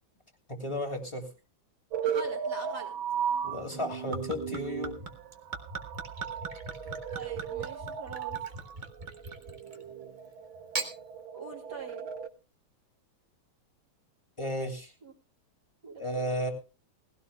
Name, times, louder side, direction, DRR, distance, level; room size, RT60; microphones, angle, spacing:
voice 1, 0.5-1.3 3.4-5.0 14.4-14.9 16.0-16.5, equal, 15° left, 3 dB, 2.8 m, -33 dB
sound 1, 1.9-12.3, right 8 dB, 85° right, 1.8 m, -36 dB
voice 2, 2.0-2.9 7.1-8.4 11.3-12.1 15.0-15.1 15.8-16.5, right 4 dB, 50° right, -1 dB, 3.1 m, -43 dB
Gurgling / Chink clink / Liquid, 3.7-9.9 10.5-10.9, right 3 dB, 25° right, 1.5 m, -40 dB
19.5 x 16.5 x 2.2 m, 0.32 s
omnidirectional pair, 2.2 m